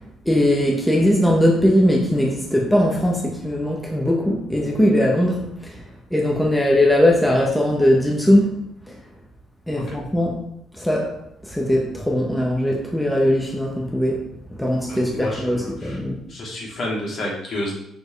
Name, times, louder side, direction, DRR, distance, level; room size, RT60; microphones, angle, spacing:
voice 1, 0.2-5.7 6.1-8.5 9.7-10.4 10.8-11.1 11.5-14.2 14.6-16.2, left 1 dB, 5° left, -2 dB, 1.4 m, -19 dB
voice 2, 14.9-16.0 16.3-17.7, left 1 dB, 60° left, -4 dB, 2.6 m, -30 dB
6.7 x 4.7 x 3.3 m, 0.75 s
supercardioid pair, 60°, 0 cm